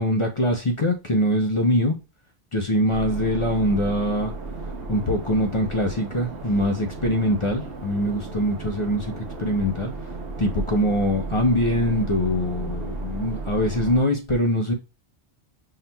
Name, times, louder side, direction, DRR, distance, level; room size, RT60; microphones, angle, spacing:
voice 1, 0.0-2.0 2.5-4.3 4.9-9.9 10.4-14.7, equal, 50° left, 0.3 m, -23 dB
sound 1, 2.9-14.0, right 3 dB, 65° right, 1.1 m, -34 dB
5.6 x 2.7 x 2.2 m
omnidirectional pair, 1.3 m